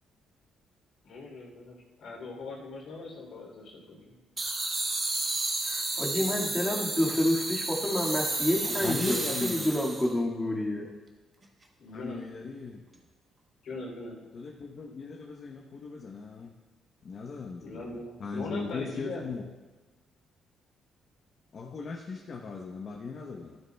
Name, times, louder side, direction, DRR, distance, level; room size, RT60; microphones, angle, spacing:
voice 1, 1.0-4.1 6.9-7.1 11.8-12.2 13.6-14.2 17.6-19.2, left 2 dB, 75° left, -2 dB, 3.1 m, -41 dB
sound 1, 4.4-10.1, right 2 dB, 30° right, 1.5 m, -32 dB
voice 2, 5.6-10.9, left 1 dB, 10° left, -4 dB, 1.9 m, -29 dB
voice 3, 8.8-9.7 11.9-12.8 14.3-16.5 17.0-19.4 21.5-23.6, left 4 dB, 50° left, 0 dB, 0.9 m, -38 dB
12.5 x 11.0 x 2.3 m, 1.2 s
cardioid pair, 90°, 0 cm